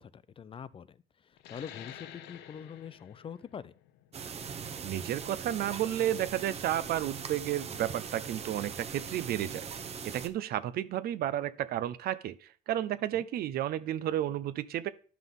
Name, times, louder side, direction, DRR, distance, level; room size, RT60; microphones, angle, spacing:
voice 1, 0.0-3.7 13.1-13.3, left 7 dB, 30° left, 17 dB, 0.4 m, -45 dB
sound 1, 1.4-6.5, left 11 dB, 85° left, 0.7 m, -51 dB
sound 2, 4.1-10.3, right 6 dB, 40° right, 0.9 m, -41 dB
voice 2, 4.8-9.6 10.0-14.9, right 12 dB, 65° right, 15 dB, 0.6 m, -32 dB
11.0 x 5.9 x 3.6 m, 0.41 s
cardioid pair, 110°, 17 cm